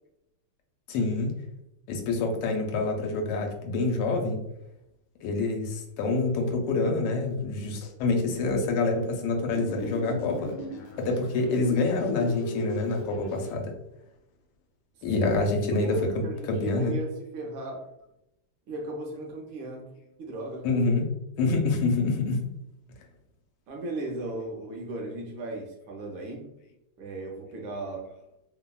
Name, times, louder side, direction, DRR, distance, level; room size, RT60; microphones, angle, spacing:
voice 1, 0.9-1.3 1.9-4.4 5.2-10.5 11.0-13.7 15.0-17.0 20.6-21.1 21.4-22.4, left 3 dB, 90° left, 2 dB, 1.5 m, -26 dB
sound 1, 9.5-13.5, left 2 dB, 70° left, 1.1 m, -37 dB
voice 2, 15.7-17.9 18.7-19.9 20.2-20.8 23.7-26.5 27.0-28.1, right 2 dB, 70° right, 0 dB, 1.2 m, -36 dB
3.5 x 2.1 x 2.2 m, 0.84 s
omnidirectional pair, 2.4 m